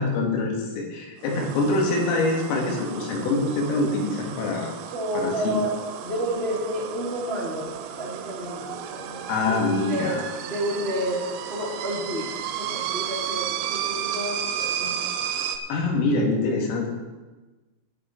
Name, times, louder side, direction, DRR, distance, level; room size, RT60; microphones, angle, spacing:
voice 1, 0.0-4.7 5.2-5.6 9.3-10.2 15.7-16.9, left 2 dB, 80° left, 0 dB, 4.6 m, -25 dB
sound 1, 1.2-15.6, right 9 dB, 85° right, 3.3 m, -33 dB
voice 2, 4.9-10.2 10.4-15.1, equal, 20° right, -5 dB, 1.9 m, -30 dB
12.0 x 11.0 x 4.5 m, 1.2 s
omnidirectional pair, 5.9 m